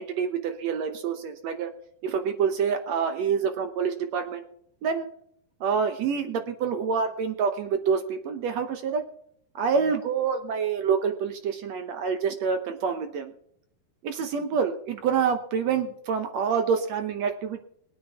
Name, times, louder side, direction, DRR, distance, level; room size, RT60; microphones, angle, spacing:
voice 1, 0.0-1.7 2.0-4.4 4.8-5.1 5.6-9.0 9.5-13.3 14.0-17.6, right 6 dB, 75° right, 7 dB, 1.6 m, -27 dB
22.0 x 9.0 x 3.6 m, 0.71 s
omnidirectional pair, 4.3 m